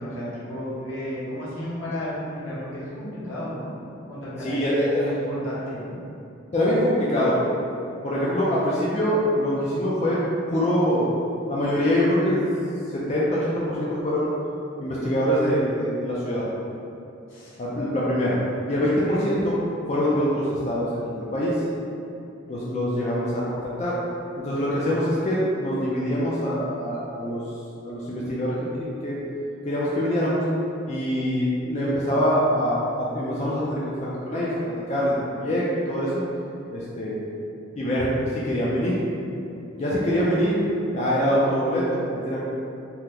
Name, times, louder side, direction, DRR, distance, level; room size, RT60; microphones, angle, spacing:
voice 1, 0.0-3.7 4.1-5.9 17.3-17.6 18.9-19.2, equal, 80° left, -9 dB, 1.0 m, -33 dB
voice 2, 4.4-5.1 6.5-7.4 8.0-10.2 10.5-11.0 11.5-12.4 12.9-14.3 14.8-16.4 17.6-18.4 18.7-19.5 19.9-21.6 22.5-23.9 24.4-27.4 27.8-29.2 29.6-30.4 30.9-34.5 34.9-36.2 36.7-37.2 37.8-38.1 38.3-39.0 39.8-40.6 40.9-42.4, equal, 35° left, -7 dB, 0.4 m, -24 dB
2.9 x 2.1 x 3.6 m, 2.7 s
head